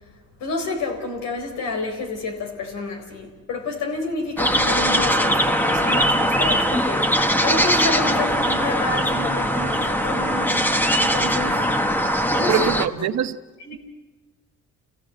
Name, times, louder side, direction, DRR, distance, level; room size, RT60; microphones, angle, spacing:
voice 1, 0.4-11.7 12.0-12.7 13.6-13.8, left 3 dB, 85° left, 4.3 m, -29 dB
sound 1, 4.4-12.9, equal, 5° left, 1.3 m, -21 dB
voice 2, 12.5-13.4, right 10 dB, 65° right, 1.1 m, -23 dB
27.5 x 16.5 x 8.0 m
cardioid pair, 90°, 30 cm